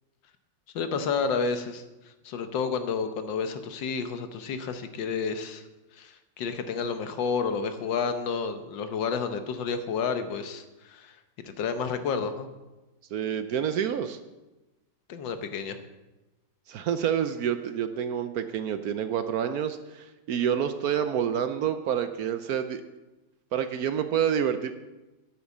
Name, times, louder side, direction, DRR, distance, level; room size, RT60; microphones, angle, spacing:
voice 1, 0.7-5.6 5.9-11.2 11.4-12.5 15.1-15.8, left 5 dB, 85° left, 9 dB, 1.7 m, -30 dB
voice 2, 13.1-14.2 16.7-22.8 23.5-24.7, right 9 dB, 65° right, 9 dB, 1.0 m, -28 dB
9.6 x 8.4 x 7.2 m, 1.1 s
omnidirectional pair, 2.0 m